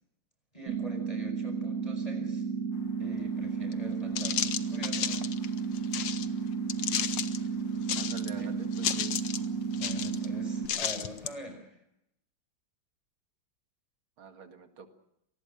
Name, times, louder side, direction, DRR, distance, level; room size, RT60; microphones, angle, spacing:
voice 1, 0.5-2.4 3.0-5.5 8.3-8.5 9.7-11.8, equal, 15° left, 4 dB, 5.0 m, -44 dB
sound 1, 0.7-10.7, right 5 dB, 50° right, 2.2 m, -33 dB
sound 2, 3.7-3.8 4.2-6.3 6.7-7.4 7.8-8.4 8.7-9.5 9.7-10.3 10.7-11.3, left 9 dB, 70° left, 1.7 m, -32 dB
voice 2, 7.9-9.2 14.2-14.9, right 5 dB, 85° right, 6 dB, 2.9 m, -47 dB
26.5 x 19.5 x 6.5 m, 0.80 s
omnidirectional pair, 2.2 m